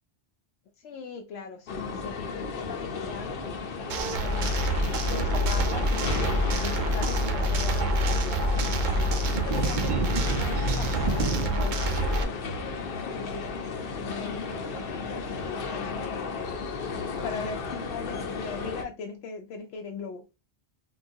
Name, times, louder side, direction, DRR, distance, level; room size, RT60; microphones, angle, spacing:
voice 1, 0.8-4.7 5.1-8.6 9.0-16.2 17.2-20.2, left 5 dB, 90° left, 0.9 m, -40 dB
sound 1, 1.7-18.8, left 4 dB, 60° left, 0.7 m, -34 dB
sound 2, 3.9-12.2, right 1 dB, 55° right, 0.6 m, -26 dB
3.9 x 2.3 x 2.5 m
omnidirectional pair, 1.1 m